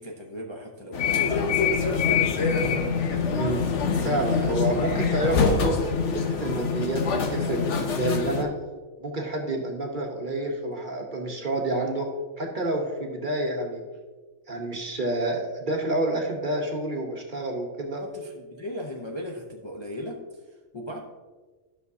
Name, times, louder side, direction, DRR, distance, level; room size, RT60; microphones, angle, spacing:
voice 1, 0.0-1.9 2.3-2.9 17.9-21.0, equal, 30° left, -1 dB, 0.6 m, -38 dB
sound 1, 0.9-8.4, left 5 dB, 65° left, 1.1 m, -25 dB
voice 2, 3.3-3.6 4.0-5.8 6.1-8.5 9.0-12.1 12.4-13.8 14.5-18.0, right 2 dB, 40° right, 1 dB, 1.0 m, -28 dB
12.0 x 6.1 x 2.7 m, 1.3 s
omnidirectional pair, 1.4 m